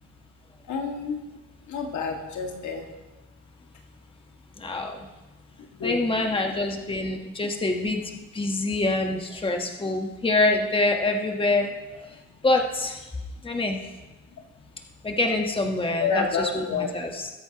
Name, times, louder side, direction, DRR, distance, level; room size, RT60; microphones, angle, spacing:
voice 1, 0.7-1.2 1.7-2.8 5.8-6.0 16.0-16.9, left 5 dB, 70° left, 2 dB, 2.0 m, -28 dB
voice 2, 4.6-5.0 5.8-8.0 8.3-11.7 12.0-12.1 12.4-13.0 13.4-13.8 15.0-17.3, left 2 dB, 15° left, 3 dB, 1.3 m, -25 dB
20.5 x 8.4 x 2.9 m, 1.1 s
cardioid pair, 90°, 30 cm